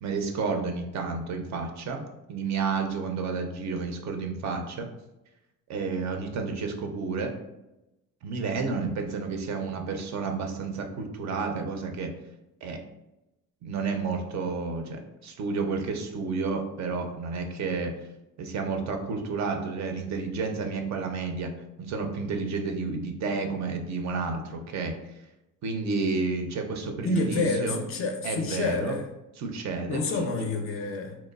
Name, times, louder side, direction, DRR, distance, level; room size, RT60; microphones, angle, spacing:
voice 1, 0.0-2.0 2.3-4.9 5.7-7.3 8.2-12.1 12.6-12.8 13.6-17.9 18.4-21.5 21.8-25.2 25.6-27.8 28.2-29.0 29.4-30.0, right 4 dB, 50° right, 5 dB, 0.5 m, -31 dB
voice 2, 27.0-29.1 29.9-31.2, left 3 dB, 40° left, 4 dB, 0.4 m, -28 dB
2.9 x 2.1 x 2.3 m, 0.94 s
supercardioid pair, 85°, 37 cm